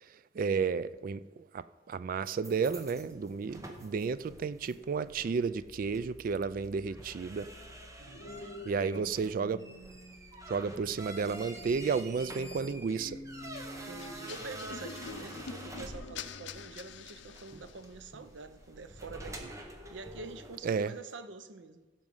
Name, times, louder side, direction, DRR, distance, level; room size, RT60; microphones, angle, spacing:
voice 1, 0.4-7.5 8.7-9.6 10.5-13.2 20.6-20.9, right 5 dB, 50° right, 0.3 m, -32 dB
sound 1, 2.4-20.6, right 1 dB, 15° right, 1.1 m, -48 dB
sound 2, 8.0-18.3 18.8-19.1, left 1 dB, 60° left, 1.0 m, -50 dB
voice 2, 8.0-9.0 13.8-19.6 19.9-21.9, right 3 dB, 85° right, 0.8 m, -47 dB
sound 3, 14.0-17.9, left 6 dB, 80° left, 0.6 m, -45 dB
15.5 x 6.3 x 5.5 m
head